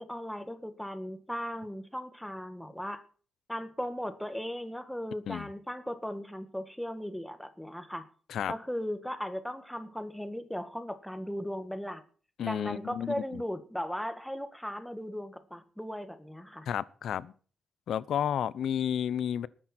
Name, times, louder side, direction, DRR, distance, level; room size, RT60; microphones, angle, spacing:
voice 1, 0.0-3.0 3.5-8.1 8.5-12.0 12.4-16.7, equal, ahead, 1.6 m, -37 dB
voice 2, 12.4-13.4 16.7-17.3 17.9-19.5, left 9 dB, 70° left, 0.7 m, -31 dB
19.0 x 10.5 x 4.4 m
cardioid pair, 125°, 0 cm